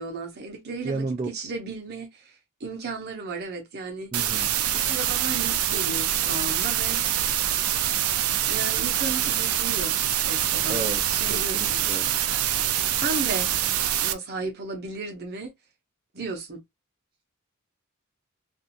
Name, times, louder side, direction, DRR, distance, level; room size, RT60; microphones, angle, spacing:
voice 1, 0.0-4.1 4.7-7.0 8.5-10.0 10.2-11.9 13.0-13.5 14.0-15.5 16.1-16.6, right 3 dB, 50° right, 0.7 m, -34 dB
voice 2, 0.8-1.3 4.1-4.5 10.7-11.0 11.3-12.1, right 3 dB, 25° right, 0.3 m, -32 dB
sound 1, 4.1-14.1, right 11 dB, 90° right, 0.4 m, -25 dB
2.5 x 2.4 x 2.6 m
head